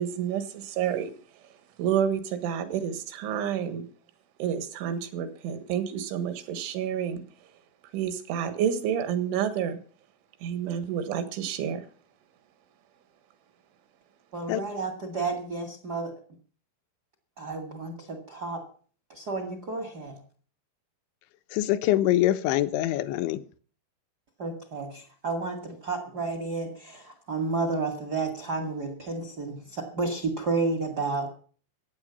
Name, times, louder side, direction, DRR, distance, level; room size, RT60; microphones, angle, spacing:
voice 1, 0.0-3.9 4.4-7.5 7.9-9.8 10.4-11.9, right 8 dB, 85° right, 10 dB, 3.9 m, -29 dB
voice 2, 14.3-16.1 17.4-18.6 19.1-20.2 24.4-31.3, right 3 dB, 70° right, 7 dB, 0.9 m, -31 dB
voice 3, 21.5-23.4, left 14 dB, 80° left, 12 dB, 3.1 m, -24 dB
15.0 x 9.3 x 7.1 m, 0.43 s
omnidirectional pair, 5.4 m